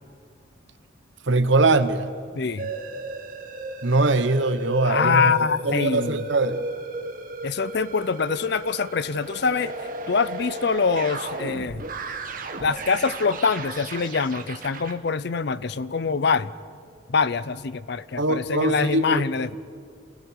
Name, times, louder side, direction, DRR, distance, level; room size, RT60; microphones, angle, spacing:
voice 1, 1.3-2.1 3.8-5.3 5.6-6.6 18.2-19.2, right 2 dB, 65° right, 11 dB, 1.0 m, -22 dB
voice 2, 2.3-2.7 4.8-6.2 7.4-11.8 12.6-16.5 17.1-19.6, left 5 dB, 55° left, 16 dB, 0.5 m, -24 dB
sound 1, 2.6-15.0, right 2 dB, 40° right, 1.2 m, -35 dB
27.5 x 16.5 x 6.4 m, 2.3 s
head